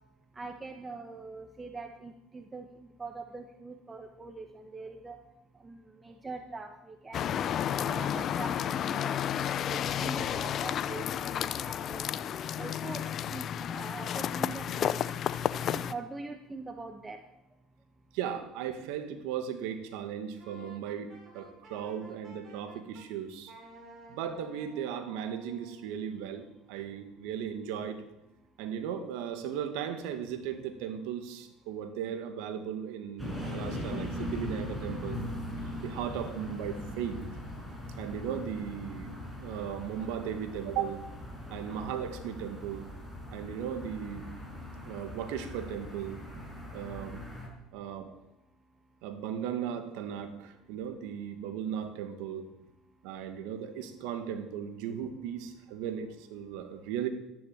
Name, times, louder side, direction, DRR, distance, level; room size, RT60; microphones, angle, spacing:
voice 1, 0.3-2.6 3.0-5.2 5.6-7.6 7.8-12.1 12.6-13.0 13.3-15.0 15.7-17.2, right 3 dB, 20° right, 6 dB, 1.5 m, -43 dB
sound 1, 7.1-15.9, left 9 dB, 50° left, 0.8 m, -32 dB
voice 2, 18.1-23.5 24.1-28.0 28.6-35.2 35.6-37.2 38.0-41.0 41.5-42.9 43.3-44.3 44.8-46.2 46.7-47.3 47.7-48.1 49.0-52.5 53.0-57.1, right 8 dB, 75° right, 8 dB, 2.2 m, -37 dB
Wind instrument woodwind instrument, 20.4-23.1 23.5-25.9, right 2 dB, 35° right, 7.1 m, -53 dB
sound 2, 33.2-47.5, left 1 dB, 5° right, 6.0 m, -40 dB
13.0 x 11.5 x 8.9 m, 0.92 s
supercardioid pair, 90°, 0 cm